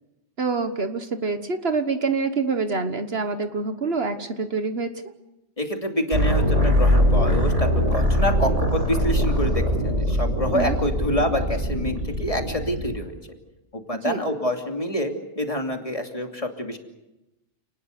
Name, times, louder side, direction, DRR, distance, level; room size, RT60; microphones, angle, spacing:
voice 1, 0.4-5.0 10.5-10.8 14.0-14.2, right 4 dB, 60° right, 9 dB, 1.6 m, -26 dB
voice 2, 5.6-13.1 13.7-16.8, left 1 dB, 30° left, 3 dB, 2.8 m, -27 dB
sound 1, 6.1-13.0, equal, 80° right, 5.7 m, -22 dB
29.5 x 19.5 x 6.7 m, 0.94 s
omnidirectional pair, 1.2 m